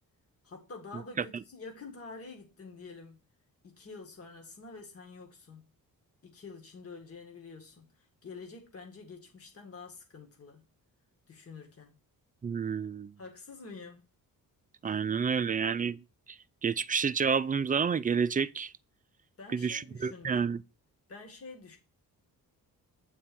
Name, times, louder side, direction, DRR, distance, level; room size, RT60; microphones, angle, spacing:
voice 1, 0.4-3.2 3.6-5.7 6.2-10.6 11.3-12.0 13.2-14.1 19.4-20.5 21.1-21.8, left 4 dB, 40° left, 1.9 m, -47 dB
voice 2, 12.4-13.1 14.8-16.0 16.3-18.7 19.5-20.6, right 6 dB, 25° right, 0.4 m, -30 dB
8.8 x 4.5 x 6.0 m
wide cardioid pair, 140°, 36 cm